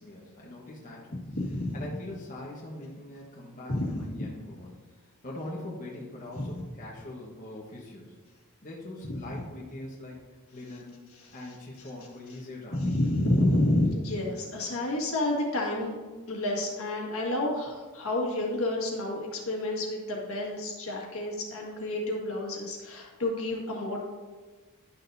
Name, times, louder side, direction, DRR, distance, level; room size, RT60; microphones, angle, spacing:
voice 1, 0.0-1.2 1.7-8.1 8.6-11.0 11.3-12.8, left 1 dB, 35° left, -4 dB, 1.2 m, -42 dB
voice 2, 1.3-1.7 3.7-4.0 6.3-6.4 12.7-16.0 16.3-24.0, left 1 dB, 70° left, -2 dB, 1.7 m, -29 dB
11.0 x 6.6 x 2.7 m, 1.4 s
head